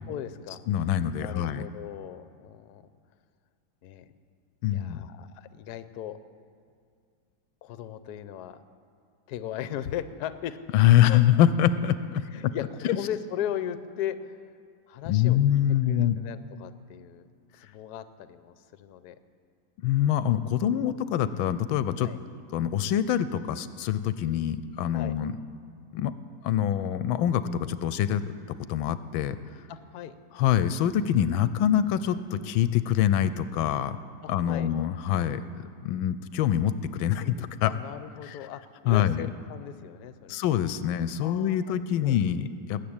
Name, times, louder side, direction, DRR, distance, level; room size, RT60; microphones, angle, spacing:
voice 1, 0.1-0.6 1.2-2.8 3.8-4.1 4.7-6.2 7.6-8.6 9.3-10.5 12.3-14.5 14.9-15.4 15.8-17.2 17.5-19.2 22.0-22.2 24.9-25.1 29.7-30.1 34.2-34.7 37.6-40.6 41.2-42.2, left 10 dB, 65° left, 12 dB, 1.1 m, -37 dB
voice 2, 0.7-1.6 4.6-5.0 10.7-12.5 12.8-13.0 15.1-16.2 19.8-22.1 22.5-25.4 25.9-26.1 26.4-28.3 28.7-29.4 30.3-34.0 34.3-35.4 35.8-37.7 38.2-38.4 38.9-39.3 40.3-42.8, left 10 dB, 90° left, 14 dB, 1.4 m, -25 dB
20.5 x 7.6 x 8.7 m, 2.2 s
omnidirectional pair, 2.2 m